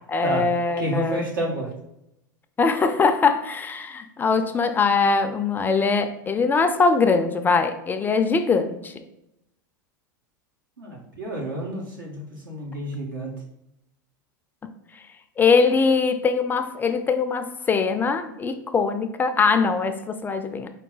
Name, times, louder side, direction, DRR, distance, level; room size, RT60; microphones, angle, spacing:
voice 1, 0.1-1.2 2.6-9.0 15.4-20.7, left 4 dB, 20° left, 8 dB, 0.3 m, -22 dB
voice 2, 0.8-1.7 10.8-13.3, right 1 dB, 80° right, -2 dB, 1.3 m, -29 dB
4.6 x 2.2 x 3.8 m, 0.84 s
hypercardioid pair, 95°, 11 cm